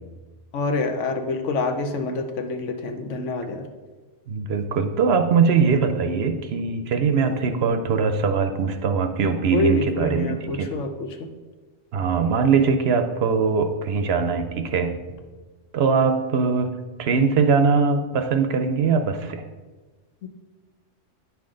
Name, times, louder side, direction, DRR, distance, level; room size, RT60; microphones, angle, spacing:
voice 1, 0.5-3.7 7.3-7.6 9.5-11.1 20.2-20.3, left 3 dB, 75° left, 6 dB, 1.1 m, -26 dB
voice 2, 4.3-10.7 11.9-15.0 15.7-16.7 17.0-19.4, right 5 dB, 65° right, 7 dB, 0.8 m, -21 dB
9.3 x 5.9 x 3.8 m, 1.3 s
omnidirectional pair, 1.3 m